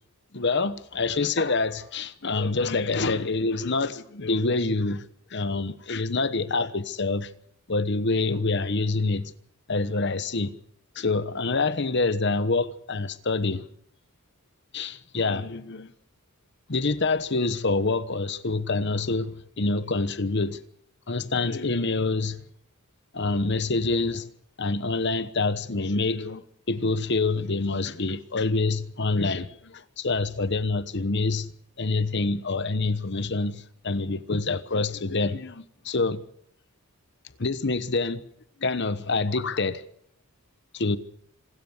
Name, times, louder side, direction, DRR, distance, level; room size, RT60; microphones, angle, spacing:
voice 1, 0.3-5.1 5.3-7.3 7.7-9.3 9.7-10.5 10.9-13.7 14.7-15.9 16.7-20.6 21.1-22.4 23.1-24.3 24.6-36.2 37.4-38.2 38.6-39.8 40.7-41.0, left 3 dB, 55° left, 1.1 m, -26 dB
27.0 x 13.0 x 7.9 m
head